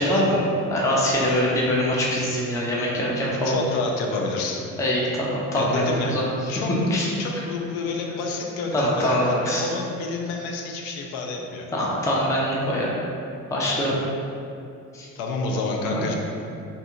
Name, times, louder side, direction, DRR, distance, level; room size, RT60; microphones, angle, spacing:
voice 1, 0.0-3.6 4.8-6.3 6.9-7.4 8.7-9.7 11.7-12.9 13.5-14.0 14.9-15.1 15.9-16.1, equal, 10° left, -4 dB, 0.4 m, -23 dB
voice 2, 3.4-4.6 5.6-6.2 6.5-11.7 15.2-16.1, left 3 dB, 70° left, 1 dB, 0.5 m, -29 dB
2.7 x 2.3 x 2.6 m, 2.6 s
hypercardioid pair, 55°, 44 cm